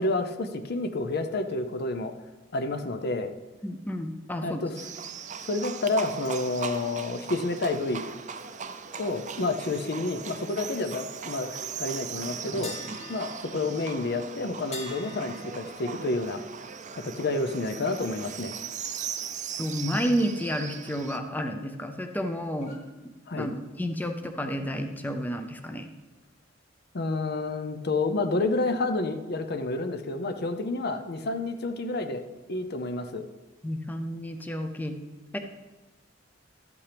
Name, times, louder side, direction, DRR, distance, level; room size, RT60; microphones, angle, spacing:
voice 1, 0.0-2.1 2.5-3.3 4.4-4.8 5.4-8.0 9.0-12.7 13.1-16.4 16.9-18.5 23.3-23.5 26.9-32.2 32.5-33.2, left 2 dB, 55° left, 8 dB, 0.6 m, -29 dB
voice 2, 3.6-4.6 19.6-22.8 23.4-25.9 33.6-35.0 35.3-35.4, equal, 10° left, 5 dB, 0.5 m, -31 dB
Livestock farm animals working animals, 4.8-21.2, right 6 dB, 40° right, 0.5 m, -39 dB
sound 1, 12.6-18.5 18.8-19.1 22.6-22.9, left 3 dB, 35° left, 1.7 m, -47 dB
12.5 x 8.4 x 3.4 m, 1.2 s
head